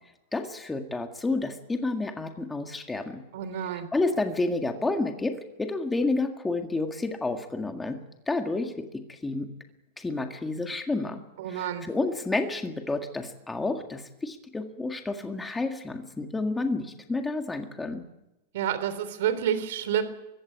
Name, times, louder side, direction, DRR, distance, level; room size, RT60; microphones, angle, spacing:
voice 1, 0.3-3.2 3.9-8.0 8.3-8.7 9.1-9.5 10.0-11.2 11.5-18.0, left 3 dB, 10° left, 5 dB, 1.9 m, -30 dB
voice 2, 3.3-3.9 11.4-11.9 18.5-20.0, right 9 dB, 70° right, 12 dB, 3.4 m, -29 dB
23.5 x 15.5 x 9.4 m, 0.92 s
supercardioid pair, 145°, 0 cm